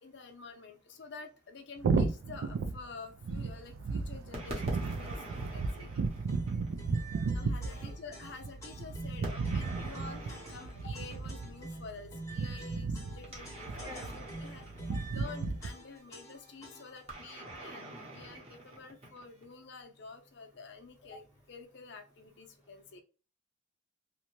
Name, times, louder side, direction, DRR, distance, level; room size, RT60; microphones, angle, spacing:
voice 1, 0.0-5.9 7.3-23.0, left 4 dB, 55° left, 5 dB, 0.6 m, -49 dB
sound 1, 1.8-15.7, right 4 dB, 75° right, 0.3 m, -35 dB
sound 2, 4.3-7.0 9.2-11.6 13.2-15.7 17.1-19.5, right 1 dB, 30° right, 0.9 m, -45 dB
sound 3, 6.3-17.1, right 2 dB, 15° left, 0.7 m, -47 dB
voice 2, 7.7-8.3 13.8-14.1, equal, 5° right, -6 dB, 1.0 m, -49 dB
2.6 x 2.2 x 2.9 m, 0.35 s
head